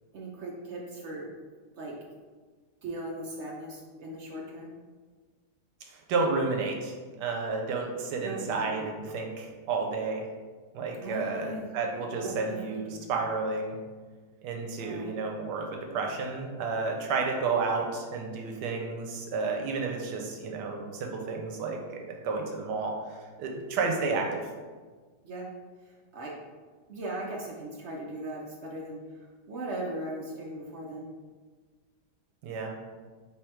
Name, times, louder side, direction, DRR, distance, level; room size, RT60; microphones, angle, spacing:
voice 1, 0.1-1.3 1.7-2.0 2.8-4.7 8.2-8.9 11.0-11.7 12.0-13.3 14.8-15.1 25.2-25.5 25.8-26.3 26.9-31.1, right 1 dB, 65° right, -2 dB, 0.7 m, -39 dB
voice 2, 5.8-10.3 10.7-13.8 14.4-21.8 22.1-24.4 32.4-32.7, right 4 dB, 90° right, 2 dB, 1.3 m, -31 dB
3.5 x 2.9 x 4.4 m, 1.5 s
omnidirectional pair, 1.8 m